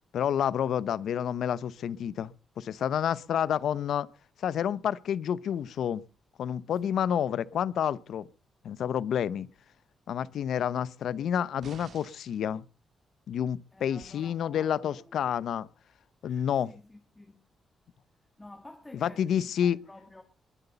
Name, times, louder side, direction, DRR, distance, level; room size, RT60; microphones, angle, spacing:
voice 1, 0.1-2.3 2.6-4.1 4.4-6.0 6.4-8.3 8.6-9.5 10.1-12.6 13.3-15.7 16.2-16.7 19.0-19.8, left 9 dB, 75° left, 0.8 m, -29 dB
sound 1, 11.6-12.4 14.0-14.1, right 6 dB, 60° right, 2.0 m, -50 dB
voice 2, 13.7-15.2 16.2-17.5 18.4-20.2, left 2 dB, 15° left, 2.1 m, -51 dB
21.0 x 8.2 x 6.9 m
cardioid pair, 135°, 0 cm